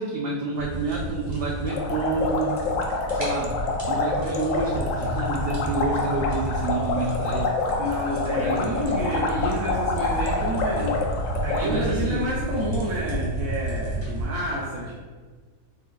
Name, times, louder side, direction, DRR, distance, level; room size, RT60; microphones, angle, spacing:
voice 1, 0.0-2.6 3.1-3.6 3.8-7.5 8.4-8.7 11.5-12.3, right 3 dB, 65° right, -2 dB, 0.6 m, -28 dB
sound 1, 0.6-14.3, right 1 dB, 20° right, 1.0 m, -32 dB
sound 2, 1.7-11.6, left 3 dB, 70° left, 0.9 m, -27 dB
voice 2, 7.8-15.0, equal, 90° right, -5 dB, 1.1 m, -29 dB
4.2 x 3.7 x 2.3 m, 1.4 s
omnidirectional pair, 1.4 m